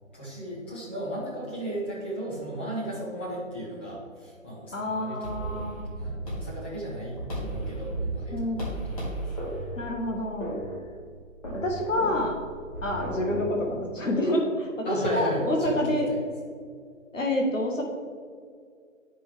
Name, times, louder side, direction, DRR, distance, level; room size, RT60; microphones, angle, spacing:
voice 1, 0.1-5.6 5.9-9.3 14.8-16.2, right 1 dB, 10° left, -8 dB, 0.8 m, -35 dB
voice 2, 4.7-5.9 8.3-8.7 9.8-10.5 11.5-12.4 12.8-16.1 17.1-17.8, left 1 dB, 70° left, 1 dB, 1.4 m, -28 dB
sound 1, 5.2-13.5, right 1 dB, 25° left, 1.8 m, -35 dB
9.1 x 5.3 x 3.4 m, 2.1 s
figure-of-eight pair, 150°, 39 cm